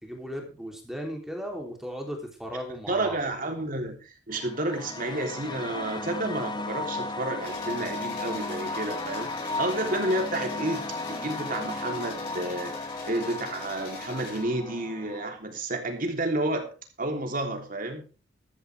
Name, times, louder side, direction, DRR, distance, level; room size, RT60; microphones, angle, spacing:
voice 1, 0.0-3.2, equal, ahead, 1 dB, 3.2 m, -36 dB
voice 2, 2.9-12.8 13.1-16.7 17.0-18.1, right 1 dB, 50° right, 3 dB, 3.4 m, -30 dB
sound 1, 4.3-15.4, left 2 dB, 25° left, 1.1 m, -35 dB
sound 2, 7.4-14.4, left 3 dB, 55° left, 7.8 m, -44 dB
14.5 x 13.5 x 3.5 m, 0.35 s
head